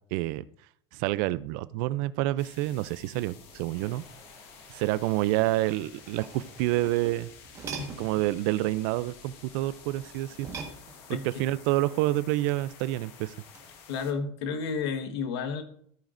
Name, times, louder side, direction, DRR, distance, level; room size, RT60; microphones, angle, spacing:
voice 1, 0.1-0.4 0.9-4.0 4.7-7.3 8.0-10.5 11.2-13.3, right 17 dB, 50° right, 17 dB, 0.4 m, -28 dB
sound 1, 2.4-14.1, left 6 dB, 40° left, 1.2 m, -52 dB
sound 2, 3.7-11.2, left 2 dB, 25° left, 2.3 m, -58 dB
sound 3, 6.0-8.3 10.4-11.3 13.4-13.8, right 5 dB, 20° right, 1.4 m, -42 dB
voice 2, 13.9-15.6, left 5 dB, 70° left, 8 dB, 1.4 m, -31 dB
14.0 x 9.1 x 2.6 m, 0.63 s
supercardioid pair, 170°, 14 cm